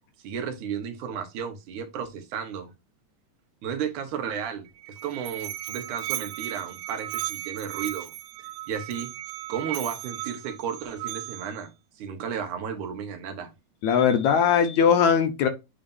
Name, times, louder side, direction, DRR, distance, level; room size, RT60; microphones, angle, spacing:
voice 1, 0.2-2.7 3.6-8.1 8.7-9.1 9.5-11.7 12.0-13.5, right 7 dB, 65° right, 2.5 m, -33 dB
Musical instrument, 4.7-11.6, right 15 dB, 85° right, 2.2 m, -36 dB
voice 2, 13.8-15.5, left 7 dB, 70° left, 1.8 m, -20 dB
8.9 x 4.1 x 2.6 m
omnidirectional pair, 4.0 m